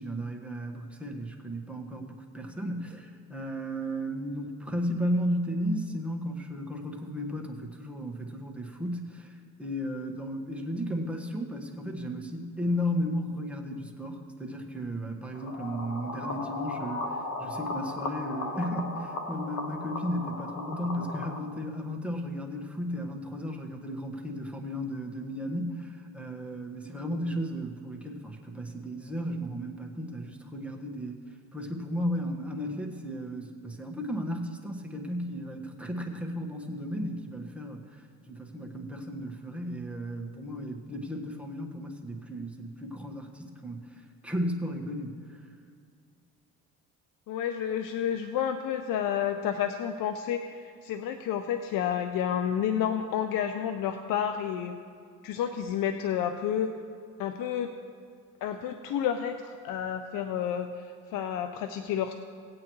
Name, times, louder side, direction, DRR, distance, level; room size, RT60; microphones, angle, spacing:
voice 1, 0.0-31.2 31.5-45.5, equal, 5° right, 0 dB, 1.5 m, -34 dB
sound 1, 15.3-21.4, left 2 dB, 50° left, 1.4 m, -36 dB
voice 2, 47.3-54.8 55.2-56.7 57.2-57.7 58.4-62.1, left 9 dB, 70° left, 7 dB, 0.7 m, -30 dB
17.5 x 8.6 x 3.2 m, 2.3 s
supercardioid pair, 80°, 34 cm